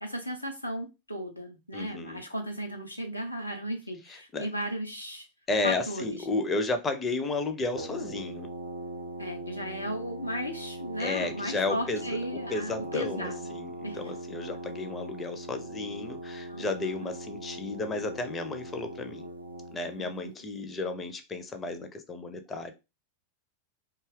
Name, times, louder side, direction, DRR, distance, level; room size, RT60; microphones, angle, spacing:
voice 1, 0.0-5.3 5.6-6.2 9.2-13.5 13.8-14.0 16.5-16.6 17.0-17.1 20.0-20.3, equal, 85° left, 0.7 m, -35 dB
voice 2, 1.7-2.2 4.1-4.5 5.5-8.5 11.0-19.3 19.7-22.7, left 3 dB, 20° left, 0.5 m, -33 dB
Brass instrument, 7.7-20.0, right 1 dB, 80° right, 0.4 m, -40 dB
2.7 x 2.3 x 3.2 m
figure-of-eight pair, 90°, 0 cm